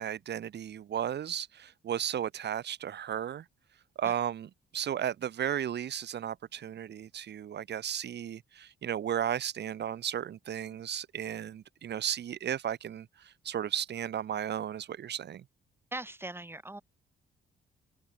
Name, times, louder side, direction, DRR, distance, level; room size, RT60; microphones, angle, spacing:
voice 1, 0.0-3.4 4.0-15.4, right 9 dB, 60° right, 1.7 m, -34 dB
voice 2, 15.9-16.8, right 2 dB, 10° right, 6.3 m, -40 dB
cardioid pair, 90°, 20 cm